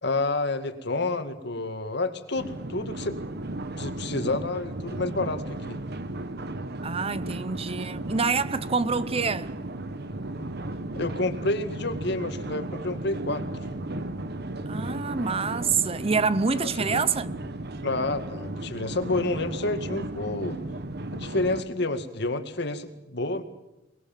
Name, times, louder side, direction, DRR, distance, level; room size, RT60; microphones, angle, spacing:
voice 1, 0.0-3.2 3.8-5.8 11.0-13.4 16.6-17.0 17.8-20.6 21.1-23.4, left 2 dB, 60° left, 2.1 m, -29 dB
sound 1, 2.4-21.6, right 1 dB, 60° right, 1.4 m, -35 dB
voice 2, 6.8-9.6 14.7-17.3, right 5 dB, 30° right, 0.8 m, -26 dB
23.0 x 21.0 x 7.5 m
head